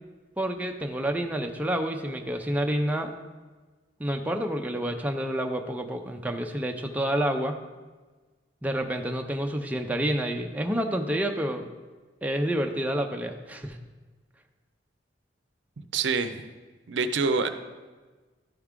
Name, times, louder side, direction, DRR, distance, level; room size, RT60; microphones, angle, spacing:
voice 1, 0.4-3.1 4.0-7.6 8.6-11.7 12.2-13.8, right 1 dB, 10° right, 3 dB, 0.5 m, -28 dB
voice 2, 15.8-16.4 16.9-17.5, right 4 dB, 70° right, 9 dB, 0.5 m, -26 dB
12.0 x 4.6 x 3.6 m, 1.3 s
head